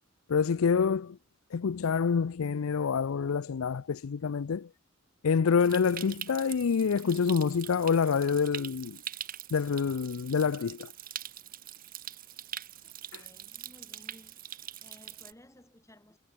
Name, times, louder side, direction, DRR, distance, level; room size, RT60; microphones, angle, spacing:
voice 1, 0.3-1.2 1.5-4.7 5.2-9.0 9.5-10.9 13.1-13.2, left 6 dB, 85° left, 0.5 m, -27 dB
Stream, 5.6-15.3, right 11 dB, 45° right, 1.2 m, -43 dB
voice 2, 12.8-14.4 14.8-16.2, left 1 dB, 15° left, 3.4 m, -57 dB
head